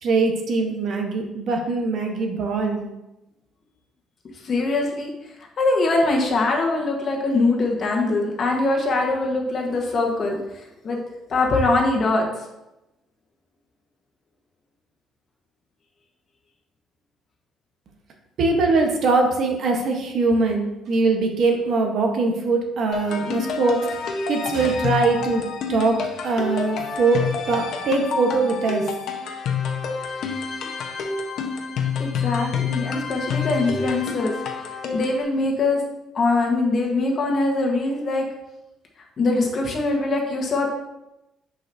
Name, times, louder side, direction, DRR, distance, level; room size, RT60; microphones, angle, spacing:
voice 1, 0.0-2.9 18.4-24.0 24.3-25.4 25.7-28.9, right 3 dB, 50° right, 2 dB, 1.0 m, -22 dB
voice 2, 4.4-5.1 5.6-11.0 11.3-12.3 32.0-34.3 34.9-35.8 36.1-38.2 39.2-40.7, left 2 dB, 35° left, 0 dB, 1.2 m, -22 dB
sound 1, 22.9-35.2, left 5 dB, 60° left, 0.9 m, -28 dB
9.6 x 5.0 x 2.7 m, 0.92 s
cardioid pair, 165°, 0 cm